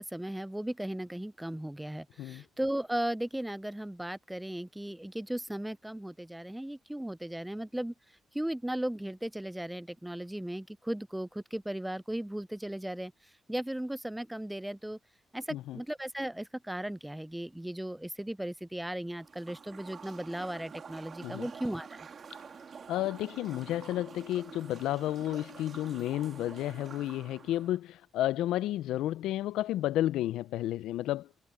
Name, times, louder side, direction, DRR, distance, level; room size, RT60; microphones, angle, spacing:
voice 1, 0.0-7.9 8.3-13.1 13.5-15.0 15.3-22.1, right 1 dB, 5° right, 0.4 m, -36 dB
sound 1, 19.1-27.8, right 6 dB, 50° right, 1.5 m, -48 dB
voice 2, 22.9-31.3, left 14 dB, 90° left, 0.4 m, -32 dB
cardioid pair, 90°, 0 cm